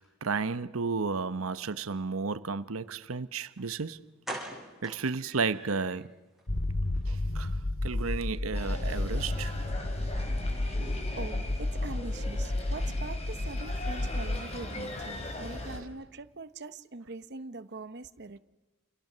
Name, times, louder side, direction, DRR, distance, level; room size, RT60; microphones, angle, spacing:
voice 1, 0.0-4.0 4.8-6.1 7.0-7.5 7.8-9.6, right 4 dB, 85° right, 0.9 m, -33 dB
sound 1, 3.6-3.7 4.2-6.0 6.4-6.5 6.8-7.0 7.3-7.4, right 1 dB, ahead, 7.3 m, -42 dB
sound 2, 6.5-14.4, left 1 dB, 70° left, 2.0 m, -31 dB
sound 3, 8.5-15.8, left 1 dB, 30° left, 4.4 m, -40 dB
voice 2, 11.2-18.4, right 3 dB, 55° right, 0.9 m, -43 dB
29.0 x 29.0 x 6.8 m
head